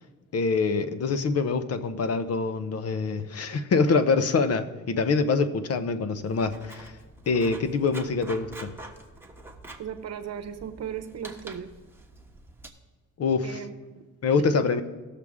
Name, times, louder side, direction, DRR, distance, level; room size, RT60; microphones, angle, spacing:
voice 1, 0.3-6.9 7.3-8.7 13.2-13.6 14.2-14.8, left 4 dB, 55° left, 11 dB, 1.0 m, -25 dB
Writing, 6.2-12.7, right 2 dB, 5° right, 1.3 m, -46 dB
voice 2, 9.8-11.7 13.4-14.0 14.6-14.7, right 8 dB, 55° right, 9 dB, 0.9 m, -37 dB
18.0 x 6.7 x 3.6 m, 1.4 s
cardioid pair, 90°, 30 cm